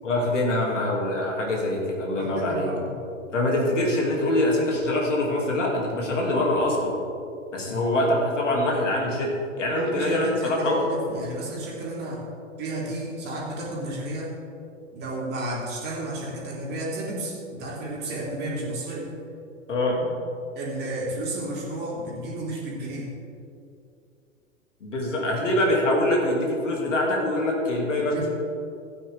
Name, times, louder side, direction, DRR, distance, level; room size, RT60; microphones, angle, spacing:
voice 1, 0.0-2.7 3.3-6.9 7.5-9.3 9.6-10.8 19.7-20.0 24.8-28.3, left 1 dB, 65° left, -2 dB, 2.9 m, -24 dB
voice 2, 2.1-2.9 7.6-7.9 9.7-12.2 12.6-14.3 14.9-19.1 20.5-23.1 25.2-25.4 28.0-28.3, right 1 dB, 25° right, -3 dB, 3.0 m, -32 dB
15.5 x 9.2 x 3.7 m, 2.5 s
figure-of-eight pair, 105°, 39 cm